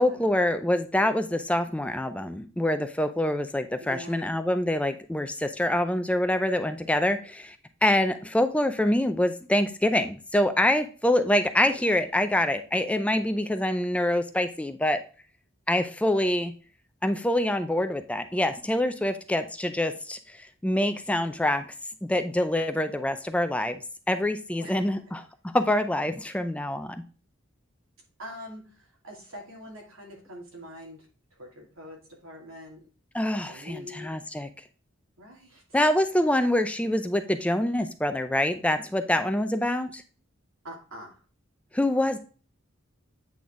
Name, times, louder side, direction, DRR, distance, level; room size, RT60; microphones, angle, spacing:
voice 1, 0.0-7.6 7.8-15.0 15.7-16.5 17.0-21.7 22.1-23.8 24.1-25.2 25.5-27.0 33.1-34.5 35.7-40.0 41.7-42.2, left 1 dB, 5° left, 9 dB, 0.4 m, -25 dB
voice 2, 3.8-4.4 24.6-24.9 28.2-31.1 31.4-32.8 33.5-34.1 35.2-35.6 40.6-41.2, equal, 90° right, -1 dB, 2.7 m, -44 dB
8.5 x 4.1 x 3.6 m, 0.38 s
head